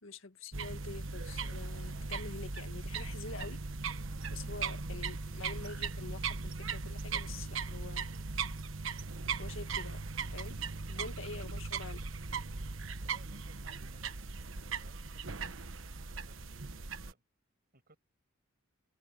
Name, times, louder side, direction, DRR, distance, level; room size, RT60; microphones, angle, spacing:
voice 1, 0.0-3.6 4.3-8.1 9.4-10.0 10.3-10.6 10.9-12.0, left 3 dB, 70° left, 1.9 m, -46 dB
sound 1, 0.5-17.1, right 4 dB, 70° right, 1.2 m, -39 dB
voice 2, 13.0-15.6 16.1-17.2 17.7-18.0, right 3 dB, 50° right, 6.5 m, -64 dB
head